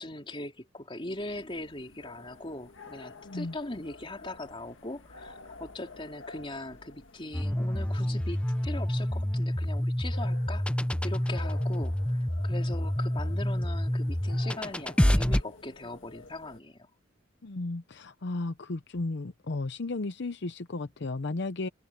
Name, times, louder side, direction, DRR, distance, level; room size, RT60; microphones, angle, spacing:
voice 1, 0.0-10.7 11.0-16.8, left 2 dB, 25° left, 3.4 m, -40 dB
sound 1, 1.1-16.6, left 3 dB, 80° left, 1.8 m, -51 dB
voice 2, 3.2-3.5 17.4-21.7, left 2 dB, 60° left, 0.7 m, -34 dB
sound 2, 7.3-15.4, equal, 5° left, 0.5 m, -28 dB
head